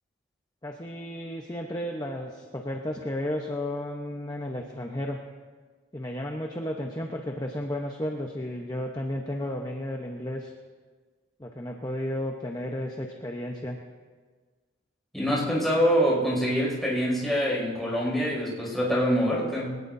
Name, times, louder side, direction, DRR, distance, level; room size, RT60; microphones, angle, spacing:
voice 1, 0.6-5.2 5.9-10.5 11.4-13.8, left 1 dB, 20° left, 1 dB, 0.9 m, -33 dB
voice 2, 15.1-19.7, equal, ahead, -5 dB, 5.9 m, -25 dB
22.0 x 19.0 x 2.7 m, 1.4 s
head